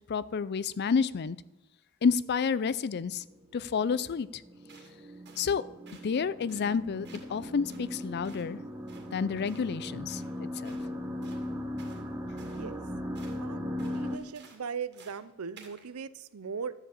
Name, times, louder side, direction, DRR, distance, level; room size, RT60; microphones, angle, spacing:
voice 1, 0.1-1.4 2.0-3.2 3.5-4.4 5.4-5.6 6.0-8.6 9.1-10.8, left 5 dB, 50° left, 18 dB, 0.4 m, -30 dB
sound 1, 3.9-14.2, left 1 dB, 10° right, 0.9 m, -38 dB
sound 2, 4.7-4.9 5.2-5.5 5.9-6.1 6.5-6.7 7.0-7.4 7.7-8.5 8.9-9.1 9.4-9.7 10.1-10.3 10.6-10.9 11.2-12.0 12.4-12.7 13.1-13.4 13.8-14.6 14.9-15.2 15.6-15.9, right 5 dB, 50° right, 2.2 m, -55 dB
voice 2, 12.4-12.8 13.4-16.7, right 6 dB, 90° right, 16 dB, 0.6 m, -39 dB
12.5 x 5.0 x 8.2 m, 1.1 s
head